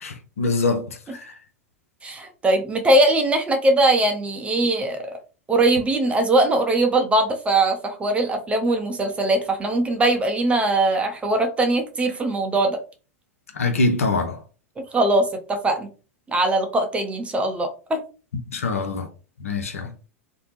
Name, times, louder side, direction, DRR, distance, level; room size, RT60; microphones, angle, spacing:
voice 1, 0.0-0.9 1.1-1.2 13.5-14.4 18.5-19.1 19.4-19.9, left 3 dB, 80° left, 0.5 m, -23 dB
voice 2, 2.0-5.0 5.5-12.8 14.9-15.9 16.3-18.0, right 2 dB, 15° right, 0.6 m, -21 dB
2.6 x 2.1 x 3.0 m
hypercardioid pair, 95°, 7 cm